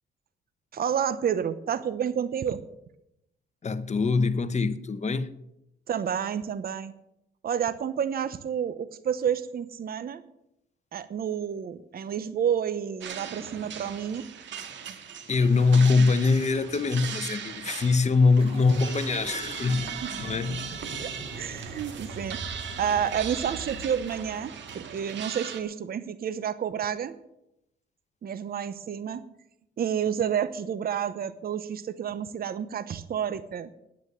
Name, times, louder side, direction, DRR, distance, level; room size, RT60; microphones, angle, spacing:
voice 1, 0.7-2.6 5.9-6.9 7.4-10.2 10.9-14.2 14.9-15.0 19.7-20.1 21.0-27.1 28.2-29.2 29.8-33.7, right 8 dB, 50° right, 0.9 m, -30 dB
voice 2, 3.6-5.3 15.3-19.9 20.2-20.7, left 4 dB, 35° left, 1.2 m, -23 dB
sound 1, 13.0-25.6, right 7 dB, 65° right, 1.9 m, -39 dB
sound 2, 18.4-24.9, right 1 dB, 25° right, 6.0 m, -42 dB
9.5 x 9.2 x 9.6 m
cardioid pair, 90°, 20 cm